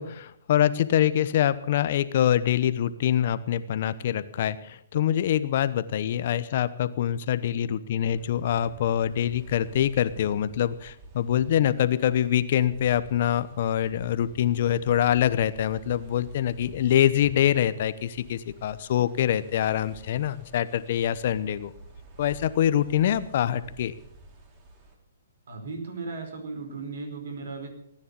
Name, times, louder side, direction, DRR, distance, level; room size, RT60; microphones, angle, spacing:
voice 1, 0.0-21.7 22.2-23.9, left 10 dB, 50° left, 14 dB, 0.9 m, -25 dB
sound 1, 8.0-24.9, right 2 dB, 30° right, 3.9 m, -47 dB
voice 2, 25.5-27.7, right 4 dB, 70° right, 5 dB, 4.9 m, -36 dB
18.0 x 10.0 x 7.1 m, 0.72 s
hypercardioid pair, 145°, 0 cm